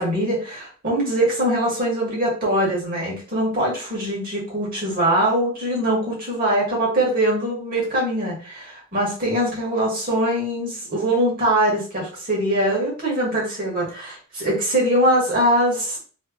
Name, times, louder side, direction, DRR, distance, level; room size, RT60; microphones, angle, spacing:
voice 1, 0.0-16.0, right 1 dB, 45° right, -4 dB, 2.0 m, -22 dB
3.4 x 3.2 x 3.0 m, 0.39 s
head